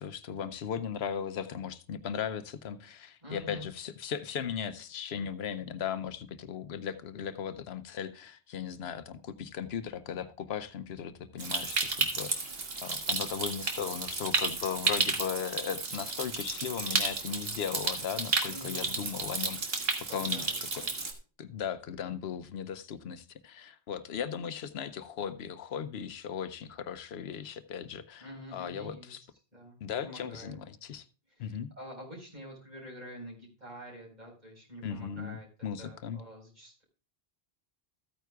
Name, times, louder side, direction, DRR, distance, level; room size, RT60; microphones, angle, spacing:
voice 1, 0.0-20.4 20.7-20.8 21.4-29.2 29.8-31.1 31.4-31.7 34.8-36.2, left 8 dB, 80° left, 0.9 m, -37 dB
voice 2, 3.2-3.7 18.5-19.1 20.1-20.9 28.2-29.2 29.5-30.6 31.3-35.5 35.8-36.8, equal, 45° right, 4.6 m, -47 dB
Stream, 11.4-21.1, right 4 dB, 70° right, 1.6 m, -32 dB
14.0 x 9.1 x 2.3 m
omnidirectional pair, 1.1 m